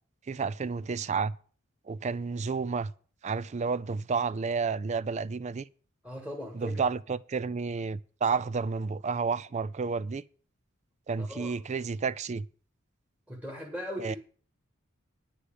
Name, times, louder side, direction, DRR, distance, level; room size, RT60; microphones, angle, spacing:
voice 1, 0.3-1.3 1.9-2.9 3.2-5.7 6.5-10.2 11.1-12.5 14.0-14.2, right 5 dB, 35° right, 0.4 m, -31 dB
voice 2, 6.0-6.8 11.2-11.5 13.3-14.2, equal, 5° right, 1.8 m, -38 dB
9.5 x 6.5 x 7.7 m
head